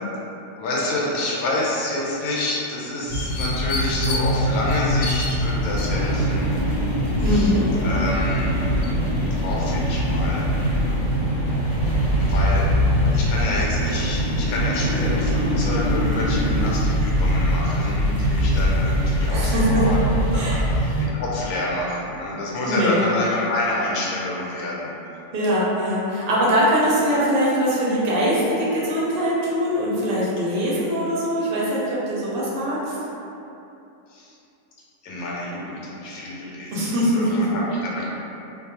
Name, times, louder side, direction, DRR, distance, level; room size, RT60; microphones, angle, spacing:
voice 1, 0.6-6.5 7.2-7.5 7.8-8.6 9.3-10.5 12.2-12.7 13.1-20.0 20.3-24.9 34.1-34.3 35.0-36.7 37.0-38.1, left 2 dB, 90° left, -5 dB, 1.0 m, -28 dB
sound 1, 3.1-21.1, equal, 70° left, 0.9 m, -22 dB
sound 2, 5.5-16.7, left 1 dB, 55° left, 0.5 m, -30 dB
voice 2, 7.2-7.7 19.3-19.9 20.3-20.6 22.7-23.0 25.3-33.0 36.7-37.5, equal, 55° right, -7 dB, 0.7 m, -22 dB
2.3 x 2.2 x 2.8 m, 2.8 s
omnidirectional pair, 1.5 m